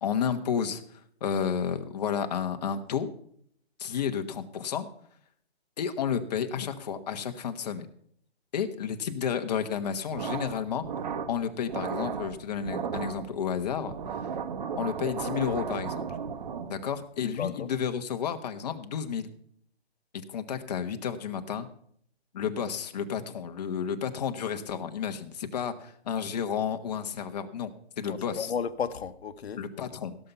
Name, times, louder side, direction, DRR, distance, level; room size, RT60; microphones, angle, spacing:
voice 1, 0.0-0.8 1.2-3.1 3.8-4.9 5.8-7.9 8.5-10.8 11.3-13.9 14.8-16.1 16.7-19.3 20.3-21.7 22.3-28.5 29.6-30.2, left 7 dB, 40° left, 1.1 m, -31 dB
sound 1, 10.1-17.0, right 6 dB, 45° right, 1.0 m, -35 dB
voice 2, 17.2-17.7 28.0-29.6, left 7 dB, 75° left, 1.0 m, -34 dB
16.5 x 6.9 x 5.7 m
hypercardioid pair, 165°, 32 cm